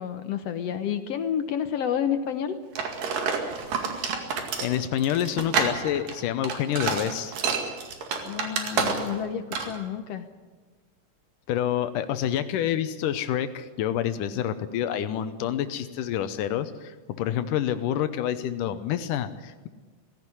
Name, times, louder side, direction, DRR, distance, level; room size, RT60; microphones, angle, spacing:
voice 1, 0.0-2.6 8.2-10.3, left 9 dB, 65° left, 9 dB, 1.8 m, -30 dB
sound 1, 2.8-9.3 9.5-9.8, right 5 dB, 85° right, 3.8 m, -28 dB
voice 2, 4.6-7.3 11.5-19.7, left 10 dB, 80° left, 11 dB, 2.4 m, -28 dB
17.5 x 16.5 x 9.8 m, 1.3 s
omnidirectional pair, 3.7 m